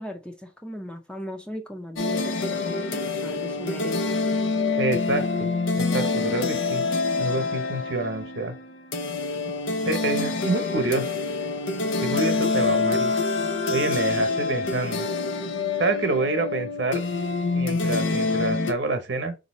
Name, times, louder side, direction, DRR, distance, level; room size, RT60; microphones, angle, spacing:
voice 1, 0.0-4.0, left 1 dB, 5° left, 0.5 m, -37 dB
sound 1, 2.0-18.7, left 3 dB, 85° left, 0.7 m, -26 dB
voice 2, 4.8-5.5 5.8-6.9 7.2-8.5 9.9-11.1 12.0-13.1 13.7-15.1 15.8-17.0 17.5-19.3, right 2 dB, 70° right, 0.9 m, -27 dB
4.0 x 2.7 x 4.1 m
head